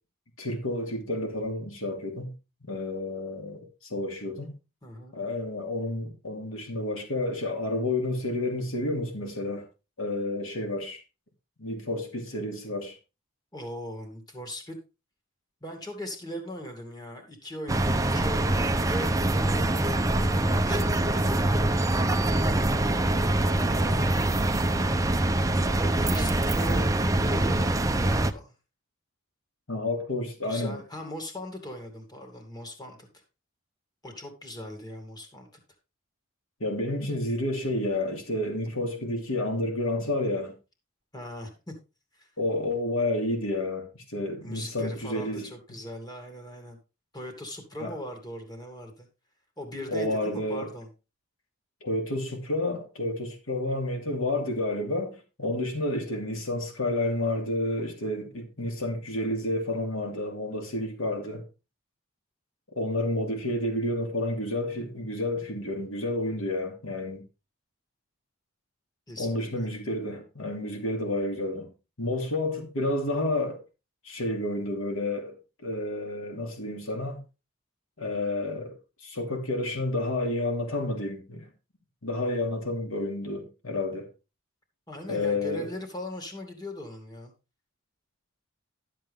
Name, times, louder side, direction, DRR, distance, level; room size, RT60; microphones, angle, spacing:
voice 1, 0.4-2.3 2.7-4.5 5.1-9.6 10.0-11.0 11.6-13.0 29.7-30.8 36.6-40.5 42.4-45.5 47.8-47.9 49.9-50.7 51.8-61.4 62.7-67.2 69.2-71.7 72.0-73.6 74.0-75.4 75.6-77.2 78.0-78.8 79.0-81.5 82.0-84.1 85.1-85.7, left 1 dB, 75° left, 2.8 m, -30 dB
voice 2, 4.8-5.2 13.5-14.8 15.6-19.1 20.1-21.4 23.4-24.2 25.7-26.9 27.2-28.5 30.4-33.2 34.0-35.5 41.1-41.7 42.1-42.3 44.4-46.8 47.1-49.1 49.6-50.9 69.1-69.7 84.9-87.3, equal, 20° left, 2.4 m, -39 dB
sound 1, 17.7-28.3, right 1 dB, 15° right, 0.6 m, -24 dB
12.5 x 7.6 x 3.5 m
head